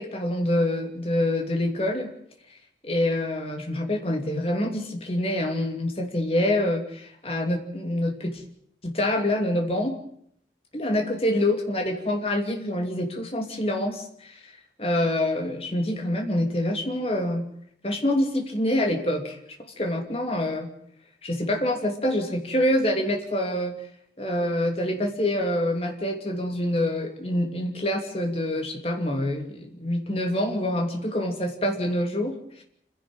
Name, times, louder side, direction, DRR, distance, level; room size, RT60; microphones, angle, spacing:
voice 1, 0.0-2.1 2.8-8.4 8.8-9.9 10.7-14.5 14.8-17.4 17.8-19.4 19.8-20.7 21.2-23.7 24.2-32.3, left 1 dB, 35° left, 3 dB, 2.8 m, -26 dB
28.0 x 11.0 x 8.9 m, 0.68 s
head